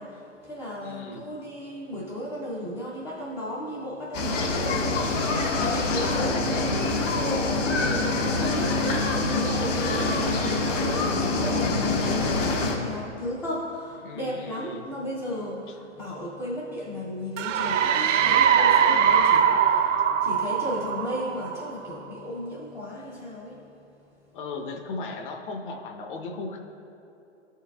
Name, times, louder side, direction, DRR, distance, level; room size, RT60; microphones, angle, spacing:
voice 1, 0.0-23.6, left 1 dB, 10° left, -7 dB, 0.4 m, -35 dB
voice 2, 0.8-1.2 14.0-14.8 15.7-15.8 18.9-19.0 24.3-26.6, left 3 dB, 45° left, 2 dB, 0.7 m, -36 dB
sound 1, 4.1-12.7, left 3 dB, 80° left, 1.3 m, -25 dB
sound 2, 17.4-21.9, right 8 dB, 80° right, 0.6 m, -21 dB
12.5 x 4.6 x 2.2 m, 2.9 s
hypercardioid pair, 140°, 37 cm